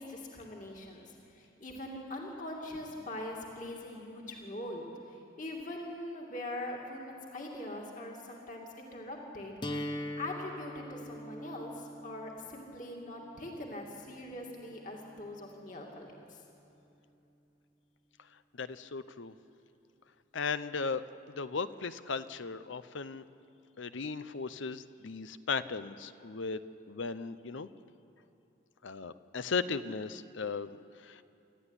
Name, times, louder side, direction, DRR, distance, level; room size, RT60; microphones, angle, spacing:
voice 1, 0.0-9.5 10.2-16.1, left 1 dB, 40° left, -1 dB, 2.6 m, -42 dB
sound 1, 9.6-15.6, equal, 25° left, 1.0 m, -43 dB
voice 2, 18.5-19.3 20.3-21.0 21.3-23.2 23.8-26.6 26.9-27.7 28.8-30.7 31.0-31.2, left 4 dB, 75° left, 13 dB, 0.7 m, -36 dB
27.5 x 13.5 x 9.9 m, 2.9 s
head